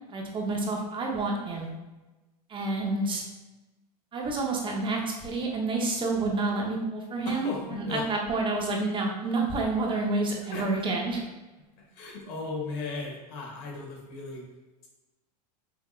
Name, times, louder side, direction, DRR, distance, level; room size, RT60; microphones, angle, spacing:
voice 1, 0.1-1.7 2.5-3.2 4.1-11.2, right 3 dB, 25° right, 0 dB, 0.9 m, -29 dB
voice 2, 7.2-8.0 10.5-10.7 11.9-14.4, left 3 dB, 55° left, -1 dB, 1.3 m, -36 dB
5.6 x 2.7 x 2.4 m, 1.1 s
hypercardioid pair, 110°, 21 cm